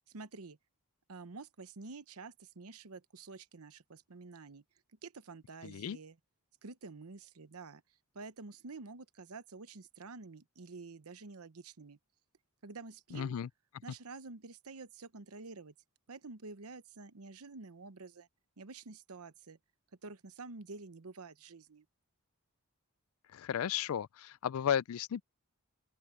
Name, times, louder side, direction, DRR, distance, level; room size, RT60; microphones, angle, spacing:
voice 1, 0.1-0.6 1.1-4.6 5.0-6.2 6.6-7.8 8.1-12.0 12.6-13.4 13.8-15.7 16.1-18.3 18.6-19.6 20.0-21.9, right 3 dB, 75° right, 0.9 m, -49 dB
voice 2, 5.6-6.0 13.1-13.5 23.3-25.2, left 9 dB, 65° left, 0.3 m, -34 dB
open air
head